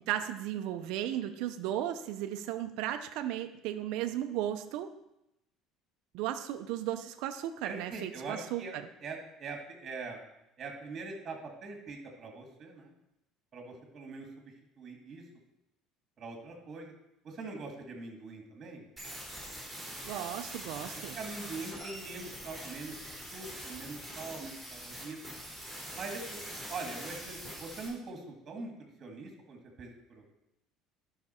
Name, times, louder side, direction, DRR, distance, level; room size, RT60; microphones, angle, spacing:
voice 1, 0.1-4.9 6.1-8.8 20.0-21.2, right 12 dB, 75° right, 7 dB, 0.6 m, -35 dB
voice 2, 7.6-8.7 9.0-10.2 10.6-12.9 13.5-15.2 16.2-16.9 17.2-18.9 20.9-25.2 25.9-28.7 29.0-30.3, right 3 dB, 30° right, 2 dB, 1.8 m, -43 dB
sound 1, 19.0-27.9, equal, 5° left, 4.1 m, -44 dB
12.0 x 5.9 x 4.3 m, 0.85 s
cardioid pair, 150°, 0 cm